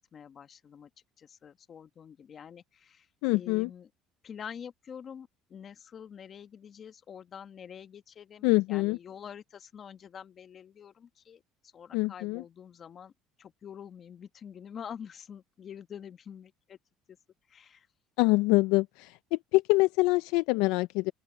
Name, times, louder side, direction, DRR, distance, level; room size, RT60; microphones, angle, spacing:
voice 1, 0.1-0.9 1.2-3.9 4.2-13.1 13.4-16.8 17.1-17.2 17.5-17.9, left 8 dB, 40° left, 1.1 m, -46 dB
voice 2, 3.2-3.7 8.4-9.0 11.9-12.4 18.2-21.1, left 23 dB, 80° left, 0.5 m, -25 dB
supercardioid pair, 90°, 0 cm